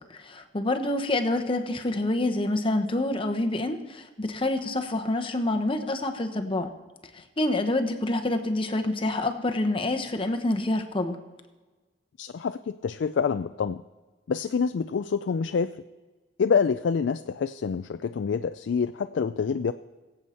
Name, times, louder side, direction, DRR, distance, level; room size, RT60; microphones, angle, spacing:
voice 1, 0.0-6.7 7.1-11.2, left 2 dB, 30° left, 6 dB, 1.0 m, -27 dB
voice 2, 12.2-13.8 14.3-15.7 16.4-19.7, left 6 dB, 70° left, 10 dB, 0.4 m, -27 dB
22.0 x 7.9 x 4.3 m, 1.3 s
head